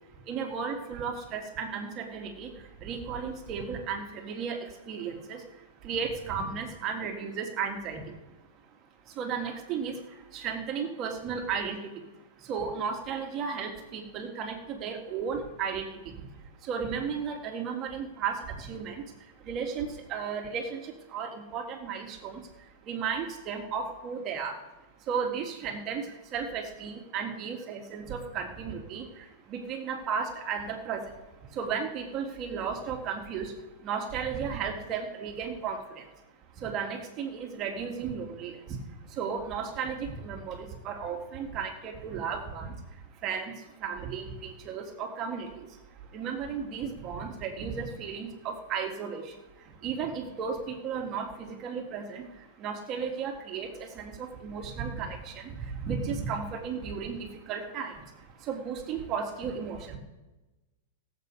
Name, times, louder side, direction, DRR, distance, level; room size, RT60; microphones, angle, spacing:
voice 1, 0.3-2.5 2.8-4.6 4.9-5.4 5.8-8.1 9.2-10.0 10.3-12.0 12.5-16.1 16.6-19.0 19.5-22.4 22.9-24.6 25.1-26.1 26.3-29.0 29.5-31.0 31.5-33.5 33.8-36.0 36.6-38.6 39.2-42.7 43.2-43.5 43.8-45.5 46.1-49.3 49.8-52.2 52.6-57.9 58.5-60.0, right 6 dB, 35° right, 3 dB, 2.0 m, -34 dB
17.0 x 7.6 x 5.4 m, 1.1 s
hypercardioid pair, 140°, 0 cm